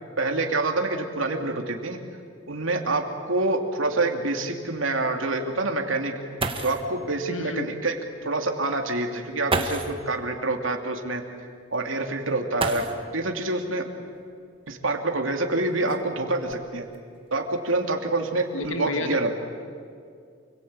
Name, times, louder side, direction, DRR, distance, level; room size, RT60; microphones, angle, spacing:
voice 1, 0.2-2.0 2.5-6.1 6.6-8.0 8.2-11.2 11.7-12.8 13.1-13.8 14.7-16.8 17.3-19.3, right 2 dB, 75° right, 4 dB, 2.9 m, -26 dB
sound 1, 2.5-2.6 3.0-3.1 3.7-3.8 6.1-6.2 6.4-7.0 8.2-8.3 9.5-10.1 12.5-13.3 14.7-14.8 15.5-17.0 17.6-18.0 18.4-18.8, right 3 dB, 25° right, 1.7 m, -31 dB
voice 2, 7.3-7.7 18.5-19.3, left 2 dB, 80° left, 8 dB, 1.7 m, -31 dB
28.5 x 22.0 x 9.0 m, 2.3 s
head